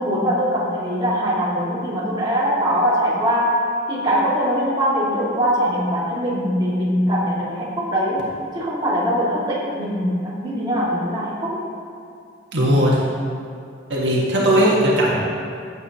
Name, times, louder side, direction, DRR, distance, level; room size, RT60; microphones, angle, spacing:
voice 1, 0.0-3.6 3.9-8.3 8.5-11.6, equal, 25° right, -7 dB, 2.4 m, -22 dB
voice 2, 12.5-13.0 13.9-15.1, equal, 75° right, -5 dB, 1.6 m, -17 dB
15.0 x 8.2 x 3.0 m, 2.4 s
head